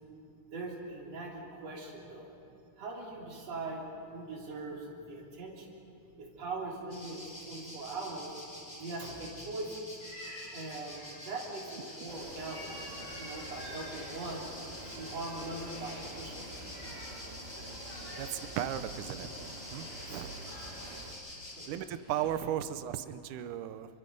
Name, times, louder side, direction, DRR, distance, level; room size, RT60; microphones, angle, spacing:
voice 1, 0.5-2.3 2.8-3.8 4.1-5.7 6.2-7.2 7.5-8.3 8.8-9.9 10.5-12.8 13.2-14.4 14.8-16.5 21.6-21.7, right 2 dB, 55° right, -3 dB, 4.3 m, -41 dB
sound 1, 6.9-21.7, left 1 dB, 15° left, 3.2 m, -47 dB
sound 2, 10.0-22.3, equal, 55° left, 7.9 m, -51 dB
sound 3, 12.1-21.1, right 1 dB, 30° right, 1.3 m, -48 dB
voice 2, 18.6-19.3 19.7-20.3 21.7-23.9, right 11 dB, 80° right, 11 dB, 2.3 m, -35 dB
27.0 x 24.0 x 5.4 m, 2.7 s
omnidirectional pair, 3.6 m